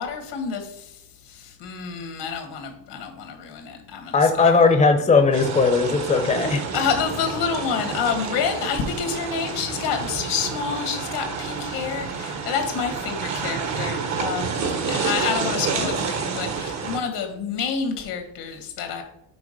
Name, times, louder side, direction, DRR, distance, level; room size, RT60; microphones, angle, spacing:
voice 1, 0.0-4.7 6.7-14.6 14.9-19.0, left 6 dB, 80° left, 4 dB, 1.6 m, -28 dB
voice 2, 4.1-6.6, left 4 dB, 15° left, 6 dB, 0.7 m, -18 dB
sound 1, 5.3-17.0, right 5 dB, 40° right, 0.9 m, -29 dB
6.2 x 3.4 x 5.2 m, 0.81 s
cardioid pair, 115°, 40 cm